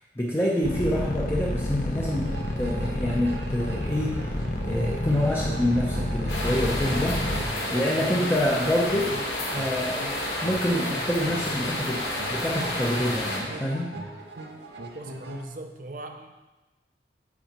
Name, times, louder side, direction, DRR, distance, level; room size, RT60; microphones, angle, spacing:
voice 1, 0.2-4.3 4.6-7.3 7.7-9.1 9.5-10.0 10.4-12.0 12.3-13.9, left 1 dB, 15° left, -4 dB, 0.7 m, -27 dB
sound 1, 0.6-7.4, left 1 dB, 45° left, 0.9 m, -29 dB
sound 2, 2.0-15.4, right 2 dB, 80° right, 0.8 m, -40 dB
sound 3, 6.3-13.4, left 1 dB, 85° left, 2.5 m, -30 dB
voice 2, 14.9-16.4, right 2 dB, 50° right, 6 dB, 0.6 m, -40 dB
8.5 x 4.9 x 4.3 m, 1.1 s
head